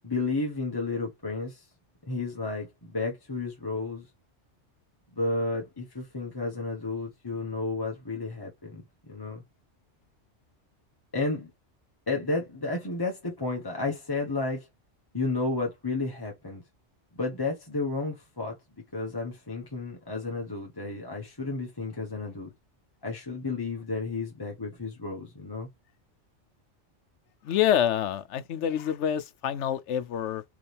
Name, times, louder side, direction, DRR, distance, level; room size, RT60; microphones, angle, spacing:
voice 1, 0.0-1.7 2.1-4.1 5.2-8.8 9.1-9.4 11.1-11.5 12.1-14.7 15.1-16.6 17.1-18.6 18.9-22.5 23.0-25.7, left 3 dB, 20° left, 1.0 m, -32 dB
voice 2, 27.4-30.4, left 10 dB, 75° left, 0.9 m, -27 dB
4.8 x 3.1 x 3.3 m
omnidirectional pair, 1.2 m